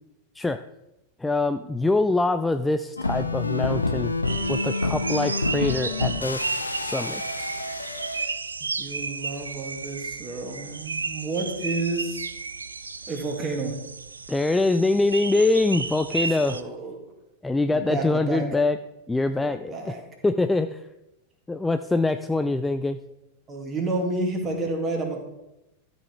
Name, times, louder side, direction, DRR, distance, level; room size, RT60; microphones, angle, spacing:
voice 1, 1.2-4.1 4.5-6.4 6.8-7.5 14.3-16.6 17.4-18.8 19.1-19.7 20.2-20.8 21.5-23.0, left 2 dB, 10° left, 9 dB, 0.3 m, -24 dB
sound 1, 3.0-8.2, left 3 dB, 80° left, 0.7 m, -28 dB
sound 2, 4.2-16.6, right 4 dB, 75° right, 0.4 m, -33 dB
voice 2, 8.8-12.3 13.1-13.9 16.1-17.0 17.7-18.5 19.3-20.0 23.5-25.2, right 2 dB, 20° right, 1 dB, 2.2 m, -30 dB
12.5 x 5.5 x 4.5 m, 0.91 s
figure-of-eight pair, 90°, 0 cm